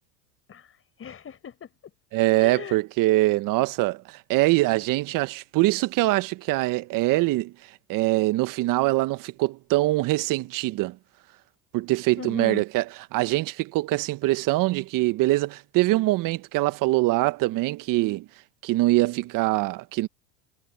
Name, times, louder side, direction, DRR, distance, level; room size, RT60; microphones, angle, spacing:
voice 1, 0.5-1.7 2.4-2.8 12.2-12.6, left 8 dB, 30° left, 6.6 m, -38 dB
voice 2, 2.1-7.5 7.9-11.0 11.7-12.8 13.1-18.3 18.6-20.1, right 19 dB, 55° right, 1.6 m, -23 dB
hypercardioid pair, 90°, 40 cm